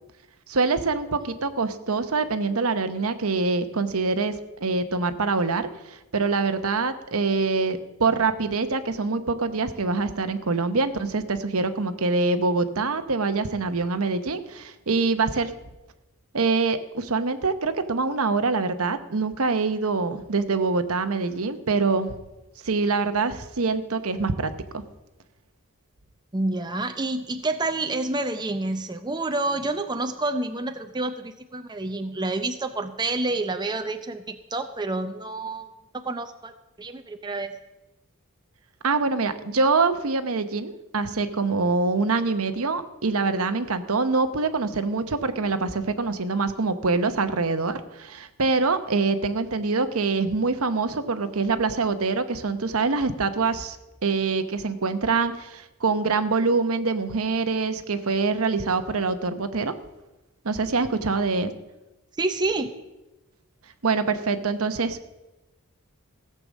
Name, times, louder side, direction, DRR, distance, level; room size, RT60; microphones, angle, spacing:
voice 1, 0.5-15.5 16.3-22.2 22.6-24.8 38.8-53.8 54.0-59.7 60.4-61.5 63.8-65.0, right 4 dB, 70° right, 10 dB, 0.9 m, -25 dB
voice 2, 26.3-35.7 35.9-36.5 36.8-37.6 62.2-62.7, right 2 dB, 20° right, 7 dB, 0.6 m, -28 dB
16.0 x 6.8 x 7.4 m, 1.0 s
head